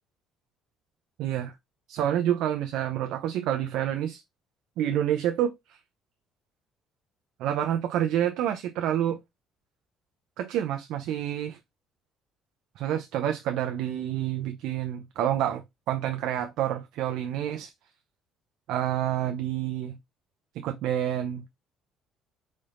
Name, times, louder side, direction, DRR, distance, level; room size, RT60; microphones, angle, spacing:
voice 1, 1.2-1.5 1.9-4.2 4.8-5.8 7.4-9.2 10.4-11.6 12.8-17.7 18.7-20.0 20.6-21.6, right 11 dB, 75° right, 0.5 m, -28 dB
4.2 x 3.2 x 2.4 m
cardioid pair, 95°, 0 cm